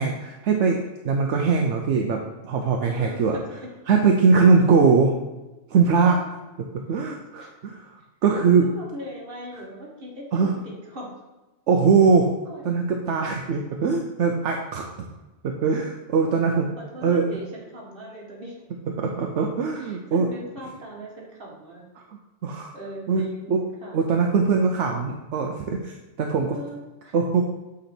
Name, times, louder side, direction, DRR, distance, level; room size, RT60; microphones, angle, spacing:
voice 1, 0.0-3.4 3.9-5.1 5.7-6.2 6.9-7.9 8.2-8.7 10.3-10.5 11.7-12.3 12.6-14.8 15.4-16.7 17.0-17.3 19.0-20.3 22.1-22.7 23.1-23.2 23.5-23.7 23.9-26.6 27.1-27.4, right 5 dB, 80° right, 2 dB, 1.0 m, -21 dB
voice 2, 2.9-3.2 3.5-3.7 6.0-6.3 7.4-7.5 8.3-11.2 12.4-12.8 16.8-18.6 19.8-21.9 22.7-24.0 26.5-27.1, equal, 50° right, -2 dB, 1.8 m, -39 dB
8.0 x 4.1 x 4.4 m, 1.1 s
omnidirectional pair, 1.2 m